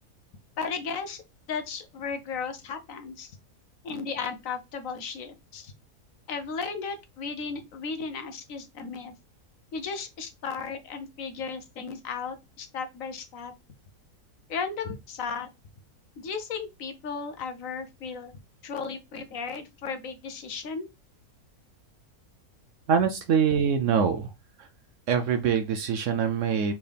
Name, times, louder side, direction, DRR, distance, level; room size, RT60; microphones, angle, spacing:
voice 1, 0.6-1.2 1.5-3.3 3.8-5.7 6.3-9.1 9.7-13.5 14.5-15.5 16.2-20.9, left 5 dB, 65° left, 1.1 m, -35 dB
voice 2, 22.9-24.3 24.6-24.7 25.1-26.7, right 7 dB, 70° right, 0.8 m, -24 dB
4.3 x 3.6 x 3.4 m
omnidirectional pair, 1.6 m